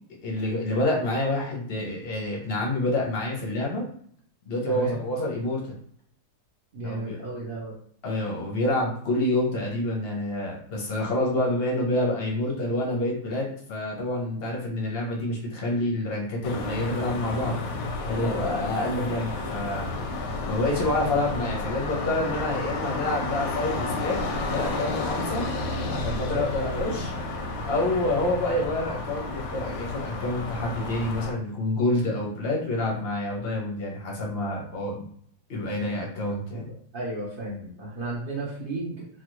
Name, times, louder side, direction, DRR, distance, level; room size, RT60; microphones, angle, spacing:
voice 1, 0.2-3.8 4.5-5.6 6.8-7.2 8.0-17.6 18.0-19.9 20.5-24.2 24.5-25.4 25.9-27.1 27.6-35.1 35.5-36.7, left 1 dB, 55° left, -2 dB, 0.7 m, -28 dB
voice 2, 4.7-5.0 6.7-7.7 18.1-18.5 26.2-27.0 36.5-36.6 36.9-39.1, right 2 dB, 85° right, -6 dB, 0.4 m, -34 dB
sound 1, 16.4-31.3, left 2 dB, 85° left, 1.3 m, -31 dB
3.3 x 2.2 x 3.0 m, 0.62 s
omnidirectional pair, 2.0 m